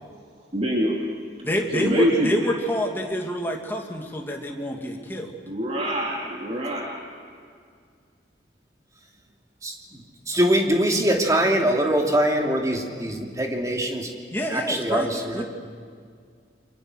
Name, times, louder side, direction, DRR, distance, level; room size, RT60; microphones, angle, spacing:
voice 1, 0.5-1.0 1.7-2.5 5.5-7.0, equal, 35° right, -3 dB, 2.8 m, -25 dB
voice 2, 1.4-5.3 14.3-15.4, equal, 15° left, 0 dB, 2.6 m, -27 dB
voice 3, 9.6-10.0 10.3-14.1 14.5-15.4, right 1 dB, 20° right, 1 dB, 2.8 m, -23 dB
29.5 x 24.0 x 6.5 m, 2.1 s
head